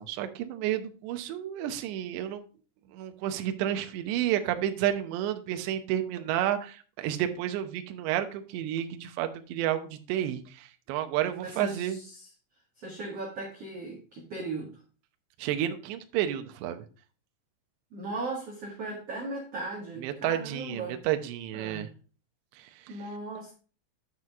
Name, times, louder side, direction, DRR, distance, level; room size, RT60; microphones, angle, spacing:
voice 1, 0.0-2.4 2.9-12.0 15.4-16.9 20.0-21.9 22.6-22.7, right 11 dB, 75° right, 7 dB, 2.7 m, -31 dB
voice 2, 11.4-12.3 12.8-14.8 17.9-21.0 21.5-21.9 22.9-23.5, right 2 dB, 60° right, -3 dB, 1.6 m, -37 dB
9.2 x 6.3 x 3.6 m, 0.38 s
omnidirectional pair, 5.9 m